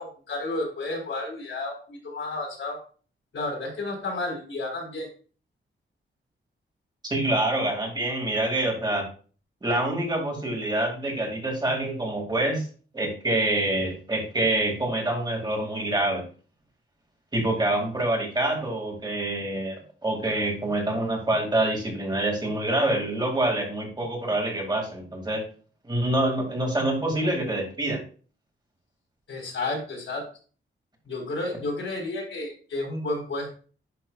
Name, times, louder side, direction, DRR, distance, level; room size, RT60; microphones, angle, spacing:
voice 1, 0.0-2.8 3.3-5.1 29.3-30.2 31.1-33.5, left 2 dB, 70° left, -1 dB, 4.2 m, -31 dB
voice 2, 7.0-9.0 9.6-12.7 12.9-16.2 17.3-25.4 25.8-28.0, right 1 dB, 20° right, 0 dB, 2.1 m, -26 dB
10.5 x 5.6 x 2.3 m, 0.39 s
wide cardioid pair, 130°, 21 cm